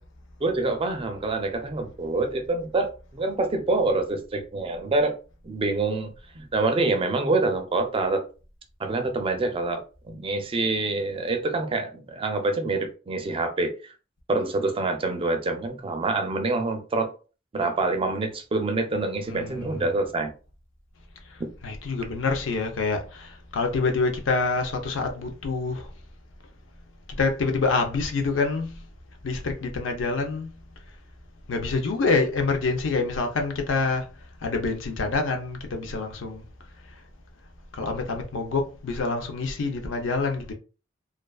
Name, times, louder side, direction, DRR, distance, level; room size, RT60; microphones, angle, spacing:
voice 1, 0.4-5.1 5.4-6.1 6.3-8.2 8.8-13.9 14.3-17.1 17.5-20.3, right 3 dB, 30° right, 0.4 m, -26 dB
voice 2, 19.3-20.0 21.6-25.9 27.2-28.8 29.2-30.5 31.5-34.0 34.4-36.4 37.8-40.5, left 3 dB, 80° left, 0.5 m, -26 dB
2.3 x 2.3 x 2.3 m
head